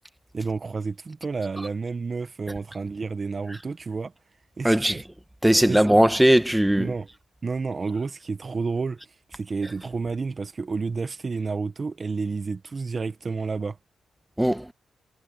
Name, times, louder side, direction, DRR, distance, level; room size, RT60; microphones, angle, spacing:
voice 1, 0.3-4.1 4.6-5.0 5.6-5.8 6.8-7.1 7.4-9.0 9.3-13.8, right 4 dB, 40° right, 1.0 m, -30 dB
voice 2, 4.6-5.0 5.4-6.9 14.4-14.7, right 1 dB, 5° right, 1.5 m, -19 dB
cardioid pair, 75°, 0 cm